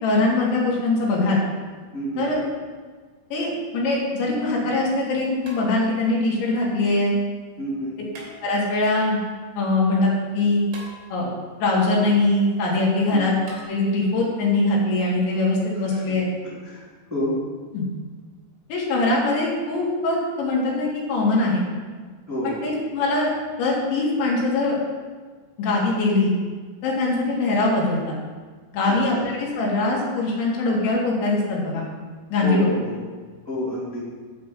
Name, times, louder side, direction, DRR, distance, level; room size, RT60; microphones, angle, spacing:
voice 1, 0.0-1.4 2.2-2.4 3.3-7.1 8.4-9.2 9.6-10.6 11.1-11.3 11.6-13.4 13.7-16.3 17.7-17.9 18.7-21.6 22.4-23.3 23.6-24.8 25.6-26.3 26.8-28.2 28.7-31.8 32.3-32.7, left 2 dB, 85° left, -4 dB, 4.6 m, -22 dB
voice 2, 1.9-2.3 7.6-8.0 13.1-13.2 15.9-16.0 16.6-16.8 17.1-17.3 22.3-22.5 28.9-29.2 32.4-33.0 33.5-34.0, equal, 5° right, -8 dB, 2.7 m, -28 dB
sound 1, 4.1-4.2 5.4-6.2 8.1-8.9 10.7-11.5 13.5-13.6, right 1 dB, 75° right, 5.0 m, -43 dB
10.0 x 5.4 x 7.5 m, 1.5 s
omnidirectional pair, 5.1 m